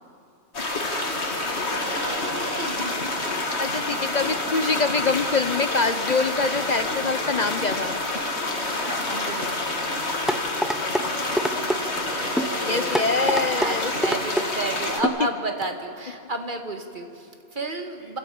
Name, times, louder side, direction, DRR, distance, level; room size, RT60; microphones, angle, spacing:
sound 1, 0.5-15.0, left 2 dB, 85° left, 2.4 m, -28 dB
voice 1, 1.6-3.6 8.8-9.5 12.0-18.2, right 2 dB, 50° right, 4 dB, 2.0 m, -32 dB
voice 2, 3.6-8.0 10.7-11.5 12.6-13.9 14.8-14.9, left 3 dB, 45° left, 10 dB, 0.8 m, -25 dB
sound 2, 10.3-11.1 11.4-11.8 12.4-12.5 12.9-13.7 14.0-14.5 15.0-15.2 15.6-15.7, equal, ahead, 0.5 m, -24 dB
27.5 x 15.0 x 8.5 m, 2.5 s
omnidirectional pair, 1.1 m